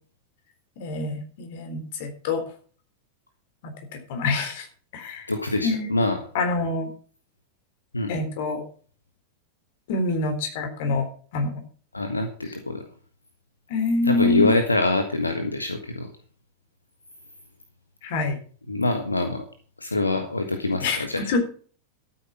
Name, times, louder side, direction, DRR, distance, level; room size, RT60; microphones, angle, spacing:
voice 1, 0.8-2.4 3.6-3.7 4.1-4.7 4.9-5.3 5.6-5.9 6.3-6.9 8.1-8.6 9.9-11.1 11.3-11.6 13.7-14.6 18.0-18.4 20.8-21.5, left 3 dB, 50° left, 6 dB, 3.8 m, -26 dB
voice 2, 5.3-6.2 7.9-8.2 11.9-12.9 14.0-16.1 18.7-19.5 19.8-21.3, left 2 dB, 80° left, 6 dB, 1.5 m, -25 dB
13.0 x 9.1 x 5.8 m, 0.43 s
figure-of-eight pair, 90°, 0 cm